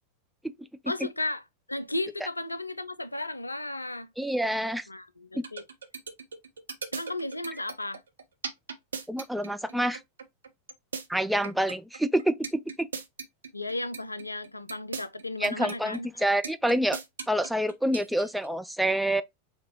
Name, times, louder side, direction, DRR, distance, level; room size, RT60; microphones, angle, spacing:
voice 1, 0.9-1.4 1.7-4.1 4.9-5.6 6.9-8.0 13.5-16.1, left 2 dB, 85° left, 0.3 m, -34 dB
voice 2, 4.2-4.8 5.3-5.4 9.1-10.0 11.1-12.9 15.4-17.0 17.3-19.2, right 1 dB, ahead, 0.3 m, -27 dB
sound 1, 5.4-18.5, right 5 dB, 70° right, 0.6 m, -37 dB
5.2 x 2.8 x 2.9 m
figure-of-eight pair, 90°, 0 cm